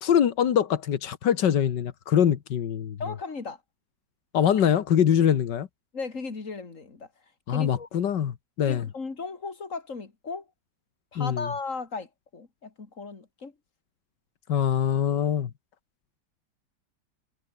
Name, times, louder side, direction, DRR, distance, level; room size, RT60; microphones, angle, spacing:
voice 1, 0.0-3.0 4.3-5.7 7.5-8.9 11.2-11.5 14.5-15.5, left 9 dB, 90° left, 2.0 m, -23 dB
voice 2, 3.0-3.6 5.9-7.1 7.5-7.9 8.7-10.5 11.1-13.5, left 4 dB, 45° left, 3.3 m, -36 dB
omnidirectional pair, 1.8 m